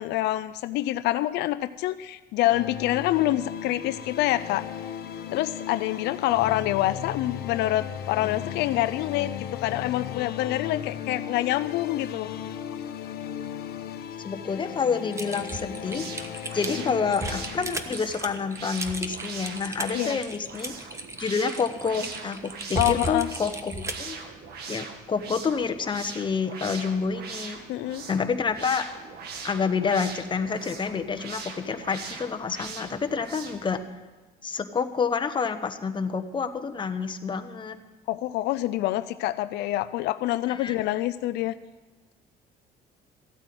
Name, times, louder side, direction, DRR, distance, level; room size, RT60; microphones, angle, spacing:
voice 1, 0.0-4.7 5.3-12.3 16.9-17.0 19.9-20.2 22.8-23.3 27.7-28.1 38.1-41.5, left 15 dB, 85° left, 12 dB, 0.5 m, -26 dB
sound 1, 2.4-17.8, left 9 dB, 65° left, 1.1 m, -36 dB
voice 2, 14.2-16.1 16.5-20.8 21.2-24.2 24.7-27.6 28.1-28.9 29.4-33.8 34.4-37.8 40.5-40.8, left 5 dB, 30° left, 7 dB, 1.1 m, -28 dB
Typing, 15.1-24.1, right 2 dB, 15° right, 1.1 m, -35 dB
sound 2, 15.7-33.7, right 5 dB, 70° right, 1.8 m, -41 dB
14.5 x 8.9 x 7.8 m, 1.3 s
cardioid pair, 110°, 17 cm